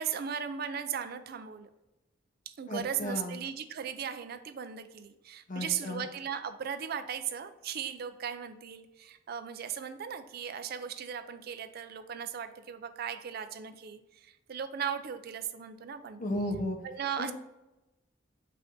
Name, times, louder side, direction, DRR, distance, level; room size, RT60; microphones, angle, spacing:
voice 1, 0.0-1.7 2.5-16.2 16.8-17.3, right 8 dB, 55° right, 10 dB, 0.4 m, -37 dB
voice 2, 2.7-3.4 5.5-6.1 16.2-16.8 17.2-17.3, left 1 dB, 45° left, 4 dB, 0.7 m, -34 dB
5.5 x 2.6 x 3.6 m, 0.98 s
head